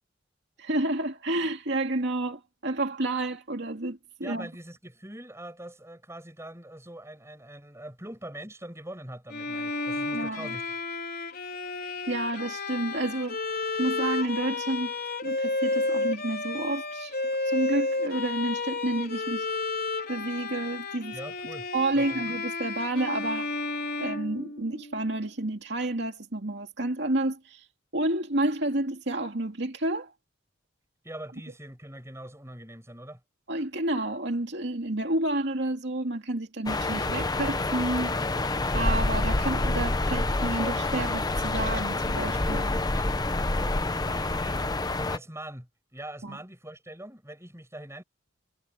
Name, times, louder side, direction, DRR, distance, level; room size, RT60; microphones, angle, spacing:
voice 1, 0.6-4.5 10.1-10.5 11.8-13.4 13.8-14.9 15.2-17.2 17.5-19.5 20.1-21.2 21.7-23.5 24.0-27.7 27.9-30.1 33.5-38.2 38.7-42.8 46.2-46.4, right 2 dB, 60° right, 2.6 m, -30 dB
voice 2, 4.2-10.8 21.1-21.7 21.9-22.4 31.0-33.2 42.8-44.6 44.9-48.0, right 1 dB, 15° right, 6.9 m, -43 dB
Bowed string instrument, 9.3-25.0, left 3 dB, 50° left, 4.3 m, -32 dB
sound 1, 36.7-45.2, left 2 dB, 20° left, 0.8 m, -27 dB
head